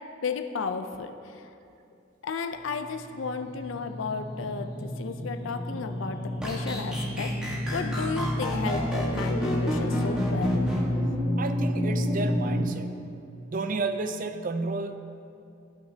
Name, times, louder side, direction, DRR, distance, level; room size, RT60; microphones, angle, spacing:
voice 1, 0.2-1.4 2.2-10.6, left 4 dB, 85° left, 8 dB, 0.5 m, -33 dB
sound 1, 2.7-12.5, equal, 30° left, 2.1 m, -30 dB
sound 2, 6.4-10.8, equal, 5° right, 1.4 m, -31 dB
voice 2, 11.4-13.0 13.5-15.0, right 3 dB, 45° right, 8 dB, 0.5 m, -31 dB
15.0 x 5.9 x 2.8 m, 2.6 s
head